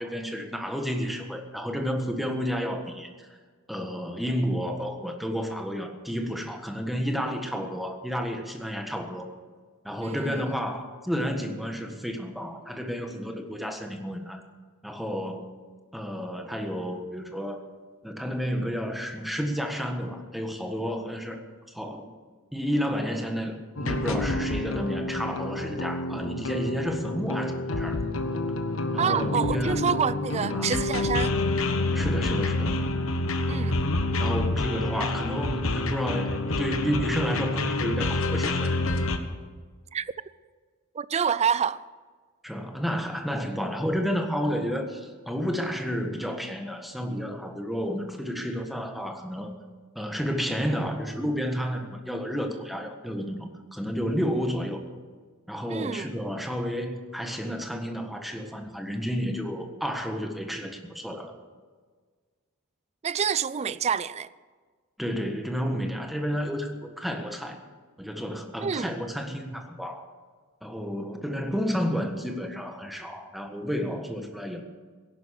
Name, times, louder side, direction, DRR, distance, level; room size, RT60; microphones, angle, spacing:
voice 1, 0.0-3.3 3.7-9.3 9.8-14.4 14.8-15.4 15.9-17.6 18.0-21.4 21.7-22.0 22.5-28.0 28.9-29.8 30.4-30.7 31.9-32.9 34.2-38.8 42.4-49.5 49.9-54.8 55.5-61.3 65.0-67.6 68.0-70.0 70.6-74.6, equal, ahead, 1.5 m, -31 dB
voice 2, 10.0-10.4 29.0-31.3 33.5-33.8 39.9-40.1 40.9-41.8 55.7-56.1 63.0-64.3 68.6-69.0, right 7 dB, 30° right, 0.4 m, -27 dB
sound 1, 23.8-39.2, left 2 dB, 70° left, 1.3 m, -28 dB
17.0 x 11.5 x 6.6 m
head